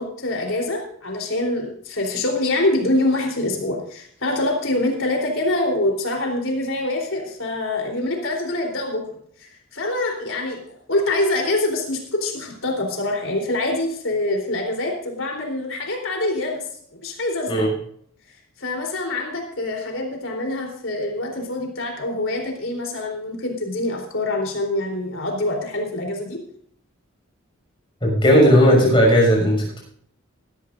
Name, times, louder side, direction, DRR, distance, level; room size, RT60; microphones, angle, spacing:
voice 1, 0.0-9.0 9.4-16.6 17.0-17.7 18.6-26.4, left 2 dB, 70° left, 2 dB, 3.7 m, -25 dB
voice 2, 28.0-29.8, equal, 25° left, -1 dB, 6.3 m, -15 dB
18.5 x 13.0 x 2.6 m, 0.62 s
head